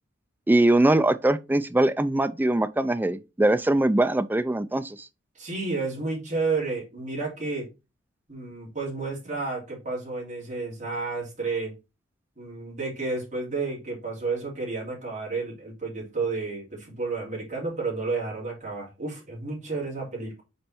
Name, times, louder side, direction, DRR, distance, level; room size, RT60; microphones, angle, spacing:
voice 1, 0.5-5.1, right 1 dB, 10° right, 0.3 m, -22 dB
voice 2, 5.3-7.7 8.3-11.7 12.4-20.4, right 3 dB, 35° right, 3.0 m, -31 dB
5.4 x 4.2 x 4.3 m
head